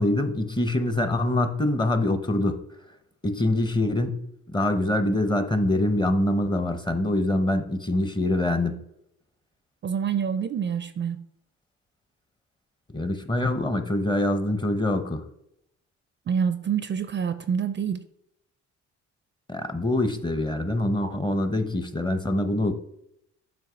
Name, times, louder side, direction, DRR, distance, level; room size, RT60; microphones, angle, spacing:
voice 1, 0.0-2.6 3.2-4.2 4.5-8.8 12.9-15.2 19.5-22.7, left 1 dB, 15° left, 8 dB, 0.7 m, -24 dB
voice 2, 9.8-11.2 16.3-18.0, right 7 dB, 40° right, 11 dB, 0.4 m, -27 dB
7.6 x 2.7 x 5.6 m, 0.76 s
cardioid pair, 90°, 30 cm